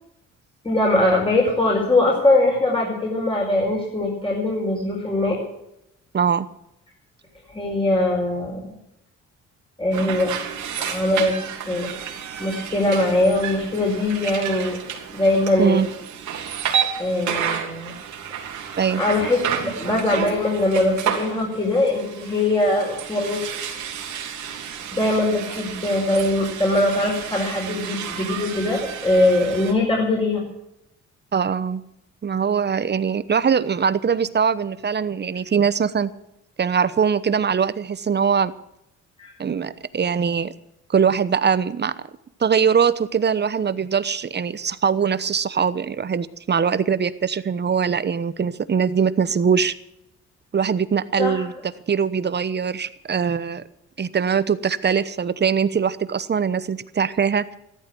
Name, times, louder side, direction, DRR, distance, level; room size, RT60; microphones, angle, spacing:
voice 1, 0.6-5.4 7.5-8.8 9.8-10.4 10.8-11.3 11.7-12.1 12.4-14.8 15.1-15.9 17.0-17.9 19.0-23.4 24.9-30.4 39.2-39.3 51.2-51.4, left 2 dB, 20° left, -2 dB, 5.2 m, -21 dB
voice 2, 6.1-6.5 15.6-15.9 18.8-19.0 31.3-31.8 32.2-36.1 36.6-38.5 39.4-40.5 40.9-41.9 42.4-49.7 50.5-51.5 51.9-53.6 54.0-57.6, right 6 dB, 35° right, 15 dB, 1.0 m, -22 dB
sound 1, 9.9-29.7, right 8 dB, 75° right, 3.1 m, -31 dB
14.5 x 13.0 x 6.2 m, 0.82 s
cardioid pair, 90°, 30 cm